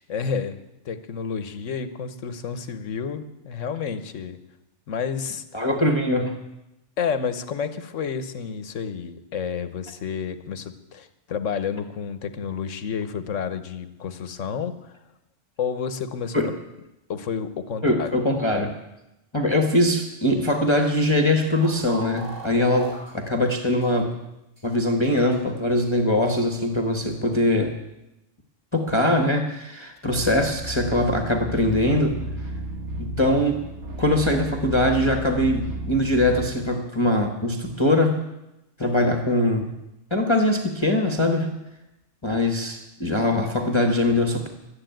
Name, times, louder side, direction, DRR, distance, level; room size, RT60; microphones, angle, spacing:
voice 1, 0.0-4.4 4.9-5.6 7.0-15.0 15.6-16.5 17.1-18.2, left 6 dB, 80° left, 11 dB, 1.3 m, -30 dB
voice 2, 5.5-6.4 16.3-16.5 17.8-18.7 19.3-24.2 24.6-27.7 28.7-32.2 33.0-33.6 34.0-38.2 38.8-39.7 40.1-41.5 42.2-44.5, left 1 dB, 25° left, 3 dB, 1.2 m, -22 dB
sound 1, 21.6-23.1 23.8-23.9 24.6-24.7 25.3-25.4, right 1 dB, 45° right, 4.7 m, -39 dB
sound 2, 30.1-36.5, right 1 dB, 60° right, 1.8 m, -33 dB
12.5 x 9.9 x 9.1 m, 0.93 s
omnidirectional pair, 1.3 m